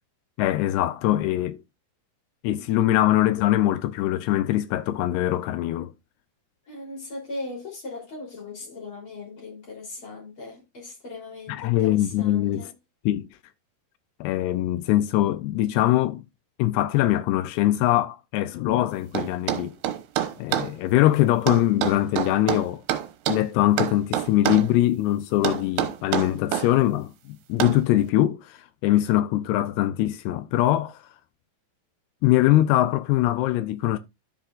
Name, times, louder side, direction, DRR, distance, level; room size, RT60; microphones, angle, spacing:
voice 1, 0.4-1.6 2.4-5.9 11.5-12.7 13.1-13.3 14.2-16.2 16.6-19.8 20.4-22.8 23.3-31.0 32.2-34.0, left 14 dB, 80° left, 2.5 m, -22 dB
voice 2, 6.7-12.7, left 3 dB, 30° left, 3.8 m, -38 dB
sound 1, 19.2-20.7 21.5-23.5 23.8-24.7 25.4-26.7 27.6-27.8, right 12 dB, 80° right, 3.0 m, -26 dB
13.0 x 5.8 x 2.4 m
omnidirectional pair, 4.9 m